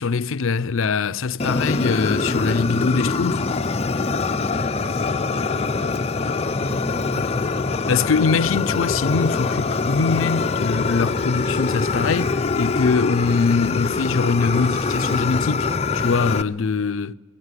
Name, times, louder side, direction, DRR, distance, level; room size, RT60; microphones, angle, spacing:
voice 1, 0.0-3.5 7.9-17.1, left 4 dB, 85° left, 0.5 m, -22 dB
Fire, 1.4-16.4, left 4 dB, 30° left, 0.6 m, -24 dB
voice 2, 4.5-7.7, equal, 30° right, 7.7 m, -36 dB
18.0 x 17.5 x 9.7 m
head